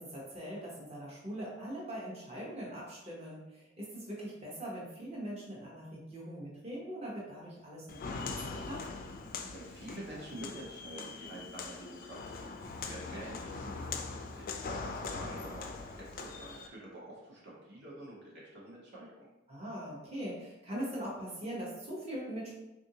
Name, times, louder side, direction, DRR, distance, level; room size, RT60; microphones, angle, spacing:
voice 1, 0.0-8.2 8.5-8.8 19.5-22.6, right 1 dB, 35° right, -5 dB, 0.9 m, -41 dB
Walk footsteps, 7.9-16.7, left 4 dB, 45° left, 0.3 m, -41 dB
voice 2, 9.3-12.5 12.9-19.3, right 1 dB, 60° right, -4 dB, 0.8 m, -47 dB
3.6 x 2.5 x 2.7 m, 0.96 s
head